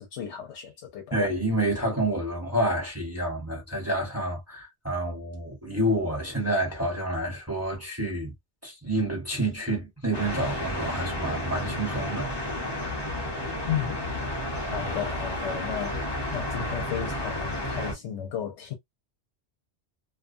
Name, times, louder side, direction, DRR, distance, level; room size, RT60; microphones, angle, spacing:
voice 1, 0.0-1.1 13.7-14.1 14.7-18.7, left 9 dB, 80° left, 0.9 m, -34 dB
voice 2, 1.1-8.3 8.6-12.5, right 1 dB, 15° right, 1.1 m, -29 dB
sound 1, 10.1-17.9, left 1 dB, 25° left, 0.7 m, -31 dB
2.6 x 2.2 x 2.5 m
omnidirectional pair, 1.2 m